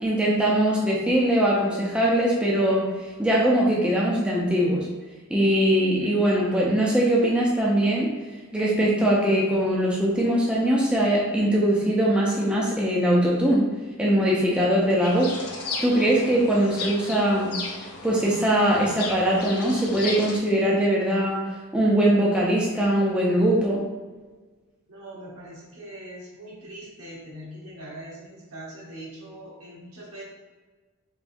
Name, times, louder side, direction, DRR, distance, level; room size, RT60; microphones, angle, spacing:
voice 1, 0.0-2.9 3.2-4.9 5.3-8.1 8.5-13.7 14.0-15.3 15.8-17.5 18.0-21.4 21.7-23.8, right 1 dB, 5° right, -4 dB, 0.4 m, -21 dB
sound 1, 15.0-20.4, left 4 dB, 85° left, 0.6 m, -35 dB
voice 2, 24.9-30.2, right 1 dB, 80° right, -6 dB, 1.1 m, -42 dB
3.3 x 2.6 x 2.5 m, 1.3 s
head